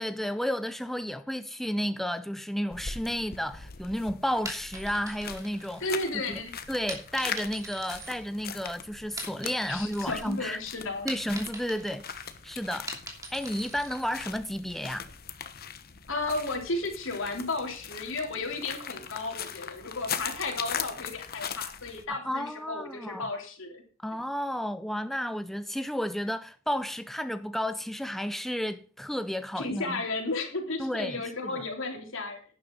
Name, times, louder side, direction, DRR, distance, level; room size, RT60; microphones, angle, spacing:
voice 1, 0.0-5.9 6.3-6.4 6.7-10.6 11.0-12.1 12.4-13.0 13.3-15.1 22.1-23.3 24.0-30.0 30.8-31.5, equal, ahead, 0.4 m, -32 dB
sound 1, 2.7-22.1, left 7 dB, 50° left, 1.2 m, -41 dB
sound 2, 4.4-6.2 6.9-8.7 9.0-10.3 10.6-14.1, right 1 dB, 15° right, 2.9 m, -42 dB
voice 2, 5.8-6.5 9.7-11.1 16.1-23.8 29.6-32.4, left 3 dB, 65° left, 3.5 m, -33 dB
11.5 x 10.0 x 3.9 m
head